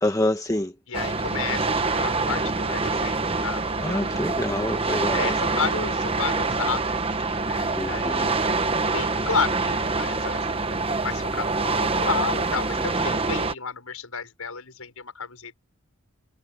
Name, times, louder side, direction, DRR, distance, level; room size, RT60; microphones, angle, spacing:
voice 1, 0.0-0.7 3.8-5.3 7.8-8.3, left 1 dB, 15° left, 1.2 m, -27 dB
voice 2, 0.9-4.4 5.1-8.6 8.9-15.5, left 5 dB, 75° left, 6.0 m, -32 dB
sound 1, 0.9-13.5, right 3 dB, 25° right, 1.1 m, -25 dB
head